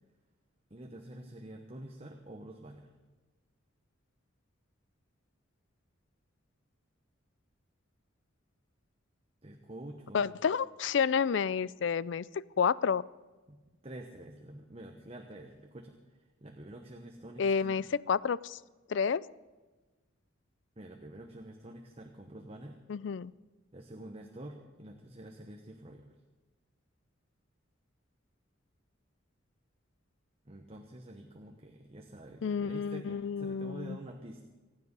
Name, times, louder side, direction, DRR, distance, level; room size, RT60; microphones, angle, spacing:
voice 1, 0.7-2.9 9.4-10.4 13.5-13.6 13.8-15.9 16.4-17.8 20.8-22.8 23.7-26.1 30.4-34.4, right 1 dB, 30° right, 3 dB, 1.1 m, -47 dB
voice 2, 10.1-12.2 12.6-13.0 17.4-18.6 18.9-19.2 22.9-23.3 32.4-34.0, left 6 dB, 65° left, 20 dB, 0.4 m, -30 dB
25.0 x 9.7 x 5.5 m, 1.2 s
head